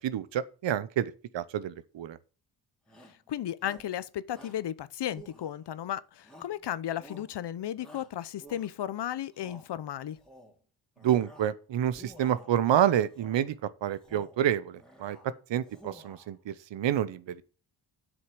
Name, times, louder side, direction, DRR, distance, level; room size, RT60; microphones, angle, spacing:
voice 1, 0.0-2.2 11.0-13.5 13.8-15.2 15.5-17.4, right 10 dB, 70° right, 0.8 m, -28 dB
Shout, 2.9-3.2 3.6-4.0 4.3-4.7 5.1-5.8 6.2-6.6 7.0-7.3 7.8-8.9 9.3-9.7 10.1-10.6 11.0-11.6 11.9-12.6 13.1-13.5 13.9-14.4 14.7-15.3 15.6-16.3, right 1 dB, ahead, 2.9 m, -52 dB
voice 2, 3.3-10.2, left 11 dB, 65° left, 0.8 m, -34 dB
7.8 x 6.3 x 6.3 m
cardioid pair, 55°, 45 cm